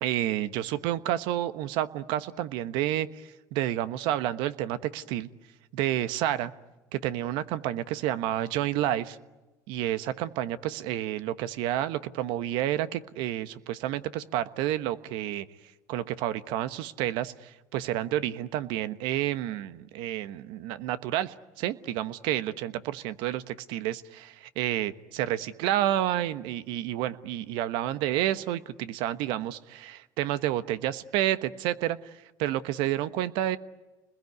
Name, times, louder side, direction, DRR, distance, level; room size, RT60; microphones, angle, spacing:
voice 1, 0.0-5.3 5.7-6.5 6.9-9.2 9.7-15.5 15.9-32.1 32.4-33.6, right 13 dB, 75° right, 13 dB, 1.2 m, -30 dB
29.5 x 21.0 x 9.5 m, 1.1 s
supercardioid pair, 90°, 8 cm